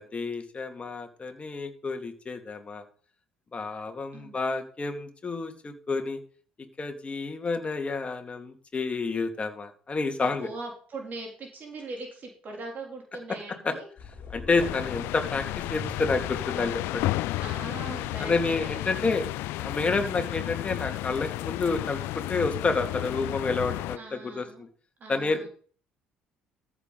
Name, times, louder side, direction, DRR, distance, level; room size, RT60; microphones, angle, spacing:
voice 1, 0.0-2.8 3.5-6.2 6.8-10.5 13.6-13.7 14.3-17.1 17.9-19.2 19.6-24.7 25.1-25.5, left 3 dB, 30° left, 5 dB, 2.3 m, -29 dB
voice 2, 10.2-13.9 17.4-18.5 24.0-24.6 25.0-25.5, right 2 dB, 45° right, 1 dB, 3.2 m, -40 dB
sound 1, 14.0-19.0, left 2 dB, 50° left, 2.4 m, -44 dB
sound 2, 14.6-24.0, left 18 dB, 65° left, 0.4 m, -32 dB
14.5 x 7.1 x 4.0 m, 0.44 s
hypercardioid pair, 55°, 4 cm